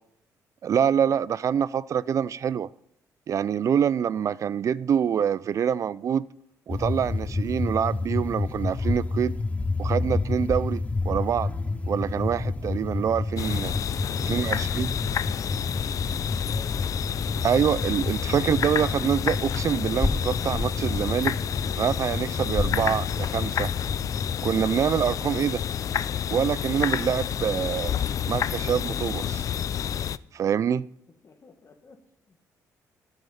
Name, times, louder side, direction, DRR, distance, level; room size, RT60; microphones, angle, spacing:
voice 1, 0.6-2.7 3.3-6.2 6.7-9.3 9.8-11.5 11.9-13.7 14.3-14.9 17.4-21.4 21.8-23.7 24.4-25.6 26.3-27.9 28.3-29.4 30.3-30.9, right 8 dB, 50° right, 0.3 m, -25 dB
sound 1, 6.7-24.6, left 3 dB, 20° left, 0.7 m, -30 dB
sound 2, 11.5-21.3, equal, 15° right, 1.7 m, -57 dB
sound 3, 13.4-30.2, left 9 dB, 55° left, 0.4 m, -29 dB
voice 2, 14.1-14.7 16.4-16.8 31.1-32.5, left 4 dB, 40° left, 1.7 m, -50 dB
10.5 x 9.2 x 5.6 m
cardioid pair, 85°, 7 cm